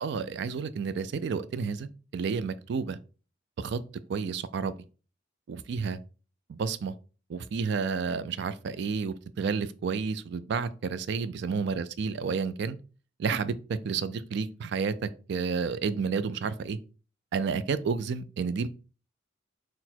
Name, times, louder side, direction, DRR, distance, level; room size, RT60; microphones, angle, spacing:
voice 1, 0.0-3.0 3.6-3.8 4.1-4.7 5.5-6.0 6.5-6.9 7.3-12.8 13.2-16.8 17.3-18.7, right 5 dB, 60° right, 0.3 m, -31 dB
4.1 x 2.0 x 4.2 m
head